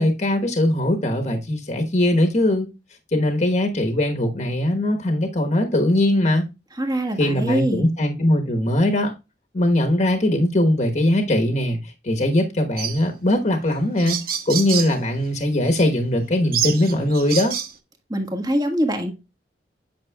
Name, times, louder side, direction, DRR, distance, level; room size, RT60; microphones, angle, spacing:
voice 1, 0.0-2.7 3.1-6.5 7.2-9.1 9.5-14.2 14.5-17.6, left 1 dB, 40° left, 1.2 m, -20 dB
voice 2, 6.8-7.9 18.1-19.1, equal, 25° right, 1.6 m, -23 dB
sound 1, 12.8-13.0 13.7-13.8 14.0-14.9 15.7-15.8 16.5-17.7, right 9 dB, 55° right, 0.9 m, -27 dB
8.6 x 6.1 x 2.2 m
head